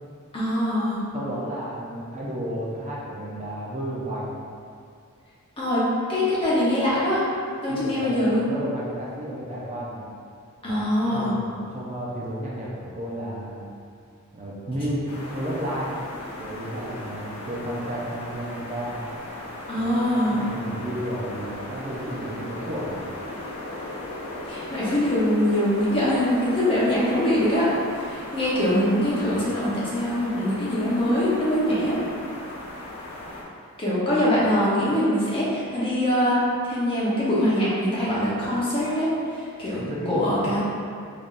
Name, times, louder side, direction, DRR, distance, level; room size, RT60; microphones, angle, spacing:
voice 1, 0.3-1.0 5.6-7.2 7.6-8.4 10.6-11.3 19.7-20.4 24.4-27.7 28.0-32.0 33.8-36.4 36.7-40.6, left 1 dB, 25° left, -9 dB, 0.9 m, -23 dB
voice 2, 1.1-4.3 7.7-10.1 10.7-13.7 14.3-15.1 15.3-15.9 16.4-19.0 19.8-23.0 39.8-40.5, equal, 30° right, -5 dB, 0.4 m, -32 dB
sound 1, 15.1-33.4, left 1 dB, 80° left, 0.8 m, -37 dB
3.9 x 3.3 x 2.5 m, 2.3 s
head